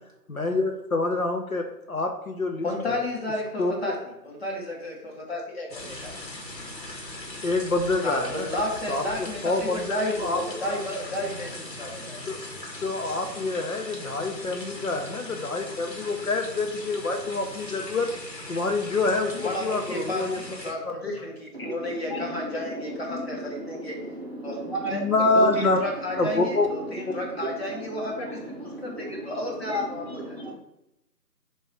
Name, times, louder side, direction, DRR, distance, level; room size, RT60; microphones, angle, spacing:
voice 1, 0.3-3.0 3.6-3.7 7.4-8.5 8.9-9.0 9.4-10.8 12.3-12.4 12.8-18.1 18.5-19.3 19.6-20.4 21.6-21.7 24.9-25.8 26.2-26.7 27.1-27.2, left 3 dB, 55° left, 0.7 m, -26 dB
voice 2, 2.6-4.0 4.2-6.2 8.0-12.2 19.3-24.0 24.4-25.0 25.3-30.4, left 1 dB, 40° left, 1.7 m, -32 dB
sound 1, 5.7-20.7, left 1 dB, 80° left, 1.8 m, -39 dB
voice 3, 21.5-25.2 25.5-30.6, equal, 40° right, 0.7 m, -36 dB
7.8 x 3.2 x 4.4 m
figure-of-eight pair, 160°, 49 cm